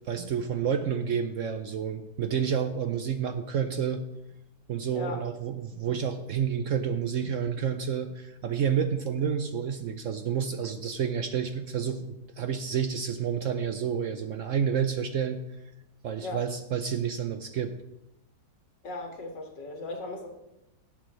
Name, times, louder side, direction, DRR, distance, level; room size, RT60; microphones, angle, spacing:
voice 1, 0.1-4.0 4.7-15.4 16.0-17.7, right 7 dB, 65° right, 8 dB, 0.8 m, -29 dB
voice 2, 18.8-20.3, left 2 dB, 90° left, 2 dB, 2.4 m, -37 dB
17.5 x 7.8 x 3.1 m, 0.88 s
omnidirectional pair, 1.8 m